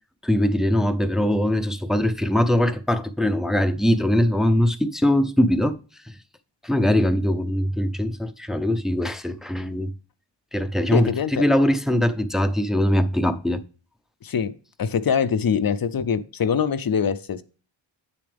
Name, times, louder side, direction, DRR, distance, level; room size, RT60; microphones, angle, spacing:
voice 1, 0.2-6.2 6.6-9.9 10.5-13.6, left 1 dB, ahead, 0.5 m, -22 dB
voice 2, 10.9-11.4 14.2-14.5 14.8-17.4, left 7 dB, 45° left, 0.6 m, -23 dB
8.8 x 6.9 x 3.4 m
wide cardioid pair, 105°, 49 cm